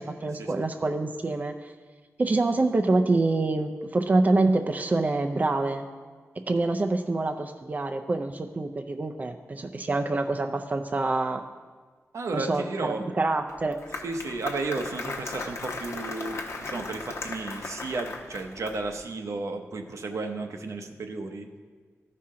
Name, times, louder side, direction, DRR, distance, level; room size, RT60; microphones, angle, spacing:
voice 1, 0.0-1.7 2.2-5.9 6.4-11.4 12.3-13.8, right 2 dB, 30° right, 5 dB, 0.4 m, -26 dB
voice 2, 12.1-13.1 14.0-21.5, right 3 dB, 75° right, 5 dB, 0.8 m, -33 dB
Applause, 13.5-19.0, left 3 dB, 65° left, 1.0 m, -37 dB
14.0 x 5.7 x 3.7 m, 1.5 s
wide cardioid pair, 100°, 5 cm